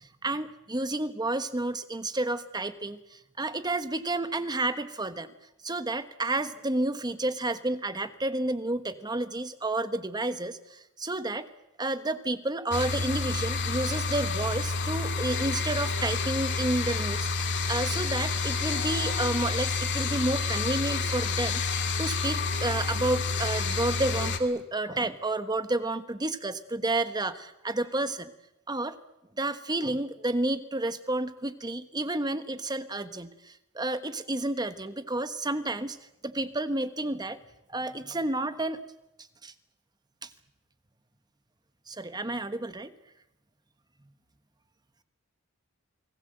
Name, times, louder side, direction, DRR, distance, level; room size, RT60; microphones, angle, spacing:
voice 1, 0.2-5.3 5.6-11.5 11.8-21.6 22.0-28.3 28.7-29.0 29.4-36.0 36.2-37.4 37.7-38.8 39.4-39.5 40.2-40.3 41.9-42.9, right 2 dB, 20° right, 11 dB, 1.3 m, -30 dB
sound 1, 12.7-24.4, left 4 dB, 55° left, 2.5 m, -29 dB
29.0 x 20.5 x 7.9 m, 0.88 s
head